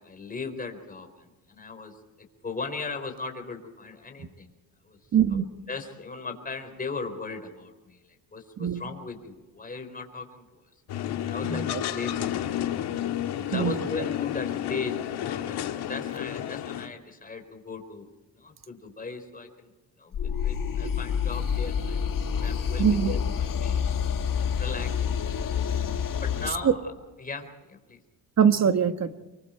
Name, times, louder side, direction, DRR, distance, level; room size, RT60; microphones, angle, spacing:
voice 1, 0.0-4.5 4.8-5.0 5.3-10.6 11.3-13.0 13.5-18.1 18.4-19.7 20.0-22.0 22.4-24.0 24.6-25.1 26.2-26.9 27.2-28.0, left 4 dB, 20° left, 5 dB, 4.4 m, -38 dB
voice 2, 5.1-5.5 8.6-8.8 11.4-11.6 13.5-13.8 22.8-23.2 26.6-26.7 28.4-29.1, right 8 dB, 40° right, 9 dB, 1.4 m, -22 dB
sound 1, 10.9-16.9, left 11 dB, 75° left, 1.8 m, -31 dB
sound 2, 20.1-26.5, left 7 dB, 55° left, 2.1 m, -28 dB
25.0 x 23.5 x 4.5 m, 1.1 s
cardioid pair, 105°, 40 cm